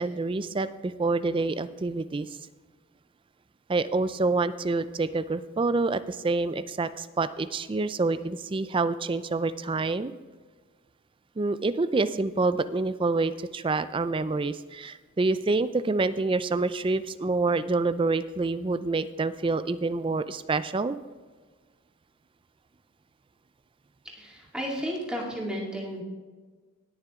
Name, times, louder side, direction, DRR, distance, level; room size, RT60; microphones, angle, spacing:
voice 1, 0.0-2.3 3.7-10.1 11.4-21.0, right 3 dB, 25° right, 13 dB, 0.3 m, -27 dB
voice 2, 24.0-26.0, equal, 5° right, -3 dB, 2.3 m, -33 dB
18.5 x 6.7 x 3.6 m, 1.4 s
head